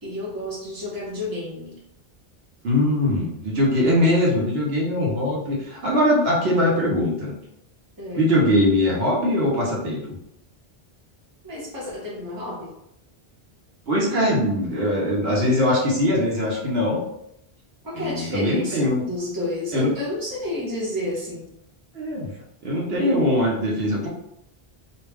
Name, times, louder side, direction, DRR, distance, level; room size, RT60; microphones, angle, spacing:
voice 1, 0.0-1.8 3.8-4.0 8.0-8.2 11.4-12.7 17.8-21.5, left 1 dB, 20° right, -6 dB, 0.8 m, -30 dB
voice 2, 2.6-7.3 8.2-10.2 13.9-17.0 17.9-19.0 19.7-19.9 21.9-22.3 22.6-24.1, left 1 dB, 75° right, -4 dB, 1.0 m, -21 dB
2.4 x 2.1 x 3.3 m, 0.78 s
omnidirectional pair, 1.1 m